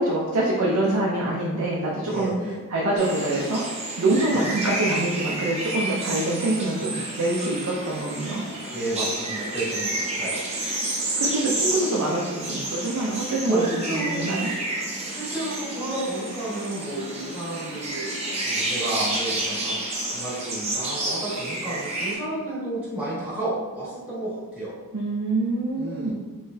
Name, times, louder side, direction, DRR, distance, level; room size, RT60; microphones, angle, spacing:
voice 1, 0.0-2.3 2.7-3.6 4.0-8.4 11.2-13.7 13.9-14.5 24.9-26.1, right 2 dB, 75° right, -4 dB, 0.6 m, -25 dB
voice 2, 2.0-2.6 4.3-4.4 8.7-10.4 13.5-14.7 15.1-18.1 18.4-19.8 20.1-24.7 25.8-26.1, right 2 dB, 5° right, -10 dB, 1.5 m, -31 dB
sound 1, 3.0-22.1, right 2 dB, 30° right, 0.7 m, -30 dB
3.8 x 3.0 x 2.7 m, 1.3 s
head